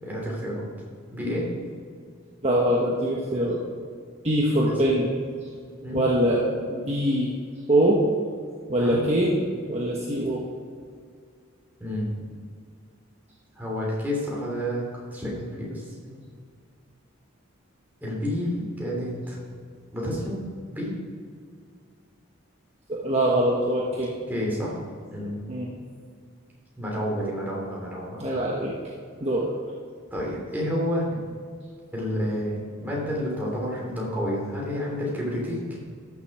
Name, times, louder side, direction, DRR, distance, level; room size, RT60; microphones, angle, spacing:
voice 1, 0.0-0.7 1.1-1.5 4.7-4.8 5.8-6.0 8.8-9.0 11.8-12.2 13.6-16.2 18.0-19.4 19.9-20.4 20.7-20.9 24.3-24.8 25.1-25.4 26.8-28.5 30.1-31.2 31.9-35.8, equal, 10° right, -5 dB, 3.2 m, -30 dB
voice 2, 2.4-3.6 4.2-5.1 5.9-6.4 6.7-7.3 7.7-8.0 8.7-9.3 9.7-10.4 22.9-24.1 25.5-25.7 28.2-28.7 29.2-29.5, right 1 dB, 30° right, -4 dB, 1.3 m, -23 dB
13.5 x 7.2 x 4.9 m, 2.1 s
head